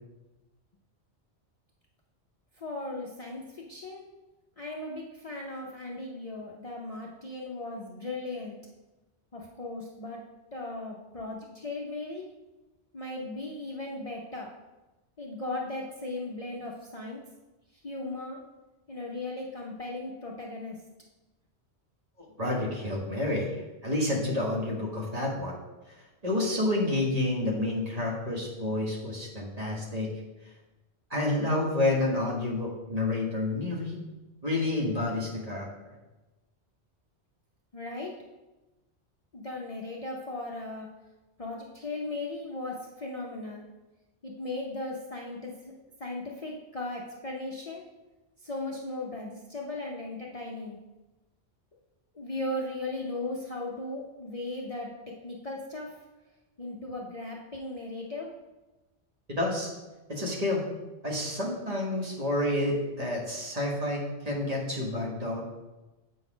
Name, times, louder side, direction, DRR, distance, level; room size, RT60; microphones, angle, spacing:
voice 1, 2.6-4.0 4.6-8.6 9.3-10.2 10.5-12.3 12.9-14.5 15.2-17.2 17.7-18.4 18.9-20.8 37.7-38.1 39.3-40.9 41.4-43.6 44.2-45.7 46.0-47.8 48.4-50.8 52.1-54.9 55.2-55.9 56.6-58.3, left 2 dB, 40° left, -2 dB, 0.7 m, -37 dB
voice 2, 22.4-23.5 23.8-25.6 26.2-30.1 31.1-34.0 34.4-35.7 59.3-59.7 60.1-60.6 61.0-65.4, left 2 dB, 35° right, -3 dB, 1.5 m, -29 dB
7.6 x 4.0 x 5.0 m, 1.1 s
omnidirectional pair, 1.1 m